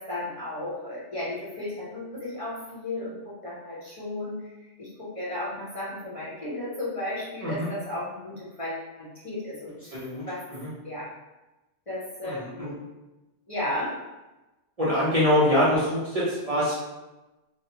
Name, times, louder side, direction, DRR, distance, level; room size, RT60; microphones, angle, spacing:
voice 1, 0.0-4.4 4.8-10.0 10.3-10.4 10.8-11.1 11.9-12.8 13.5-14.0, left 1 dB, 30° left, -10 dB, 0.8 m, -34 dB
voice 2, 9.9-10.2 10.5-10.7 12.2-12.7 14.8-16.7, left 1 dB, 35° right, -10 dB, 0.7 m, -24 dB
3.1 x 2.1 x 2.8 m, 1.1 s
omnidirectional pair, 1.2 m